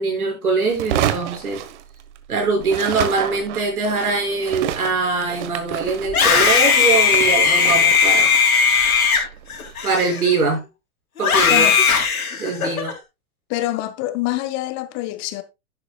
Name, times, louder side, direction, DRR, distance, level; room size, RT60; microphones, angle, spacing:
voice 1, 0.0-1.6 2.3-8.3 9.8-10.6 11.2-11.7 12.3-12.9, right 4 dB, 85° right, 5.9 m, -22 dB
sound 1, 0.7-2.3 2.6-9.8, right 11 dB, 55° right, 1.3 m, -29 dB
Screaming, 6.0-10.6 11.2-12.9, left 6 dB, 80° left, 3.4 m, -17 dB
voice 2, 13.5-15.4, left 16 dB, 40° left, 1.3 m, -25 dB
11.0 x 10.0 x 2.3 m
hypercardioid pair, 115°, 42 cm